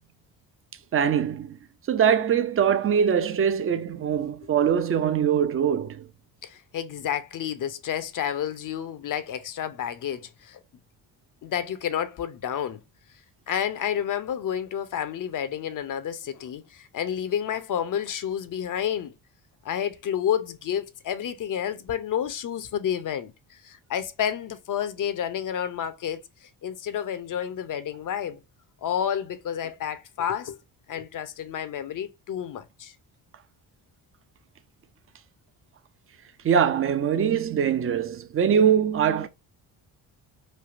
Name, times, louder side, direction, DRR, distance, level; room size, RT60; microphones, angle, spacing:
voice 1, 0.9-1.6 1.9-6.1 36.4-39.3, right 8 dB, 30° right, 0.4 m, -22 dB
voice 2, 6.4-10.6 11.4-12.8 13.5-19.1 19.6-28.4 28.8-30.6 30.9-32.9, left 9 dB, 45° left, 0.6 m, -30 dB
3.3 x 2.6 x 2.4 m
supercardioid pair, 60°, 46 cm